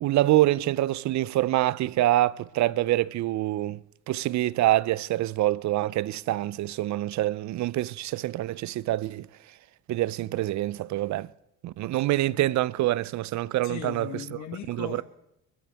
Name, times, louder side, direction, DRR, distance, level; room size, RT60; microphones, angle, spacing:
voice 1, 0.0-9.3 9.9-11.3 11.6-14.1 14.7-14.9, right 15 dB, 55° right, 0.5 m, -26 dB
voice 2, 13.6-15.0, left 8 dB, 55° left, 1.6 m, -37 dB
23.5 x 13.5 x 3.5 m
cardioid pair, 105°, 35 cm